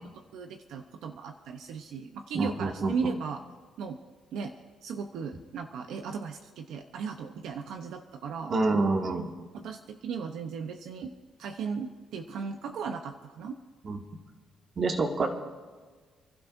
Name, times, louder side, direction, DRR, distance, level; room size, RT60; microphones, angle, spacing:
voice 1, 0.3-3.4 3.8-4.0 4.3-4.5 4.8-8.5 9.5-11.1 11.4-13.6, right 5 dB, 80° right, 5 dB, 0.8 m, -36 dB
voice 2, 2.3-3.1 8.5-9.3 13.8-14.0 14.8-15.3, right 3 dB, 45° right, 2 dB, 1.9 m, -27 dB
29.0 x 12.0 x 2.7 m, 1.4 s
cardioid pair, 90°, 0 cm